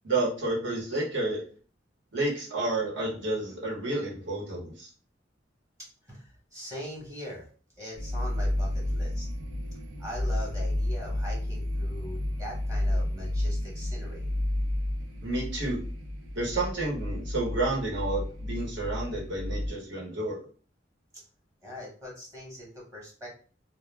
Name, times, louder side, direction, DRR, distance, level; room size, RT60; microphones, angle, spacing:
voice 1, 0.0-1.4 2.1-4.9 15.2-15.8 16.3-20.4, right 2 dB, 70° right, -3 dB, 1.0 m, -30 dB
voice 2, 6.0-7.5 7.8-9.3 10.0-14.3 21.6-23.3, equal, 20° right, -4 dB, 0.9 m, -41 dB
sound 1, 8.0-19.7, left 1 dB, 85° right, 0.5 m, -31 dB
2.2 x 2.1 x 3.2 m, 0.41 s
head